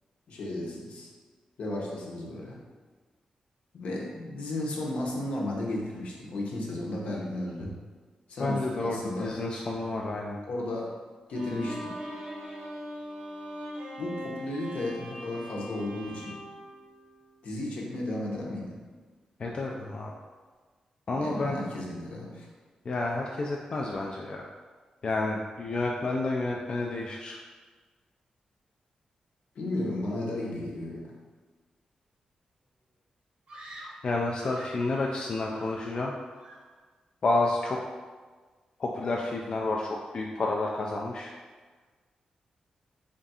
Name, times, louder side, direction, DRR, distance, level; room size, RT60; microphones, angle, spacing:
voice 1, 0.3-1.1 1.6-2.6 3.7-7.7 8.3-9.3 10.5-11.0 11.3-12.0 14.0-16.4 17.4-18.8 21.1-22.5 29.6-31.1, left 1 dB, 70° left, -2 dB, 0.8 m, -34 dB
voice 2, 8.4-10.4 19.4-20.1 21.1-21.6 22.9-24.5 25.0-27.4 34.0-36.1 37.2-37.8 38.8-41.3, left 2 dB, 45° left, -1 dB, 0.3 m, -30 dB
Bowed string instrument, 11.3-17.6, equal, 90° right, 1.0 m, -41 dB
Screaming, 33.5-34.9 35.4-36.1 36.4-36.8, right 1 dB, 60° right, 0.7 m, -47 dB
3.5 x 2.4 x 4.1 m, 1.4 s
wide cardioid pair, 125°, 2 cm